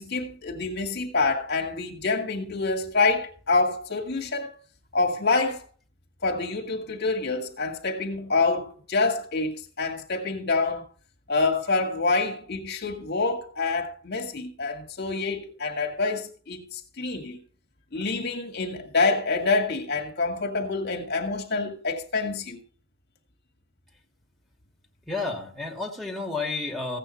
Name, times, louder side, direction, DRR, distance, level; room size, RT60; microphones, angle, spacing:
voice 1, 0.0-4.5 4.9-5.6 6.2-10.8 11.3-17.4 17.9-22.6, left 3 dB, 55° left, 2.2 m, -26 dB
voice 2, 25.1-27.0, left 3 dB, ahead, 2.7 m, -31 dB
15.5 x 9.0 x 4.3 m
head